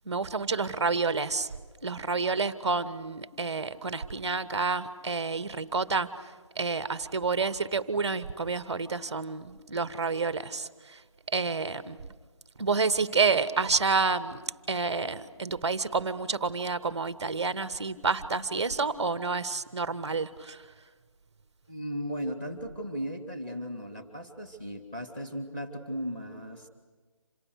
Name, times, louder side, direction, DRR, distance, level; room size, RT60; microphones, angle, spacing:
voice 1, 0.0-1.5 1.8-6.1 6.5-11.0 11.3-12.0 12.6-14.4 14.7-20.6, right 4 dB, 10° right, 12 dB, 0.7 m, -29 dB
voice 2, 21.7-26.7, equal, 15° left, 5 dB, 2.3 m, -36 dB
29.0 x 27.0 x 6.5 m, 1.4 s
figure-of-eight pair, 175°, 17 cm